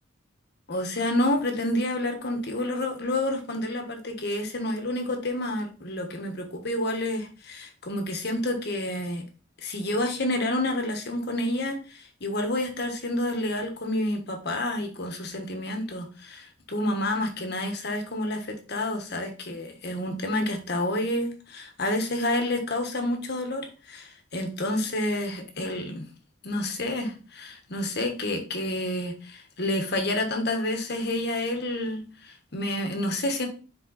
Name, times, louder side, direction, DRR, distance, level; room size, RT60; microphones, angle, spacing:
voice 1, 0.7-9.2 9.6-26.0 26.4-33.5, left 1 dB, 55° left, 4 dB, 1.4 m, -29 dB
5.3 x 4.7 x 4.0 m, 0.35 s
head